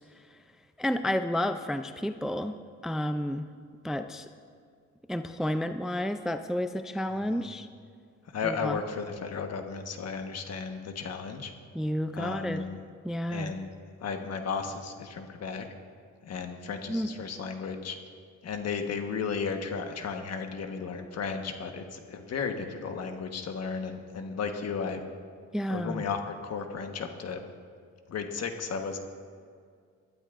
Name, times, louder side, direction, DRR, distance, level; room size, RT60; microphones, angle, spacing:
voice 1, 0.8-2.6 2.8-3.4 3.8-4.3 5.1-7.7 8.4-8.8 11.7-12.6 13.0-13.5 16.9-17.1 25.5-26.0, left 1 dB, ahead, 9 dB, 0.4 m, -31 dB
voice 2, 8.3-11.5 12.1-12.8 13.3-13.7 14.0-15.7 16.2-18.0 18.4-25.0 25.7-27.4 28.1-29.0, left 5 dB, 55° left, 5 dB, 1.3 m, -34 dB
21.0 x 12.0 x 2.5 m, 2.1 s
cardioid pair, 100°, 30 cm